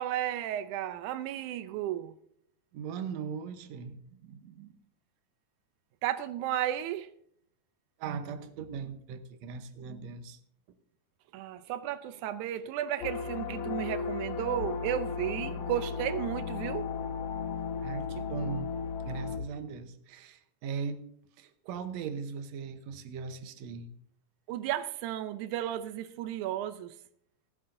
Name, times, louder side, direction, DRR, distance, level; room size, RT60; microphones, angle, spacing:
voice 1, 0.0-2.1 6.0-7.1 11.3-16.9 24.5-27.0, right 12 dB, 90° right, 2.1 m, -33 dB
voice 2, 2.7-4.7 8.0-10.4 17.8-18.7 19.1-21.0 21.4-23.9, right 6 dB, 70° right, 2.1 m, -39 dB
sound 1, 13.0-19.4, left 6 dB, 80° left, 1.1 m, -35 dB
17.0 x 14.5 x 2.6 m
omnidirectional pair, 3.4 m